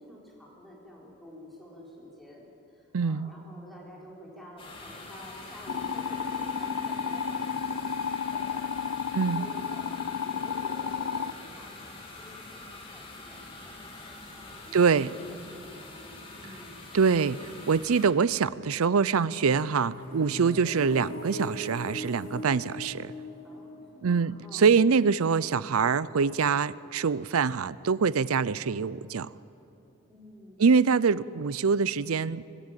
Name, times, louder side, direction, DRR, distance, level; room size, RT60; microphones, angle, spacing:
voice 1, 0.0-9.0 9.4-16.8 23.4-24.7 30.1-30.6, equal, ahead, -4 dB, 4.3 m, -50 dB
voice 2, 2.9-3.3 9.1-9.5 14.7-15.1 16.9-23.1 24.0-29.3 30.6-32.4, right 5 dB, 85° right, 19 dB, 0.5 m, -24 dB
sound 1, 4.6-18.1, left 2 dB, 25° left, 2.9 m, -45 dB
sound 2, 5.7-11.3, left 6 dB, 80° left, 0.6 m, -32 dB
sound 3, 19.4-25.2, left 1 dB, 40° left, 3.2 m, -40 dB
25.0 x 14.5 x 9.0 m, 2.8 s
head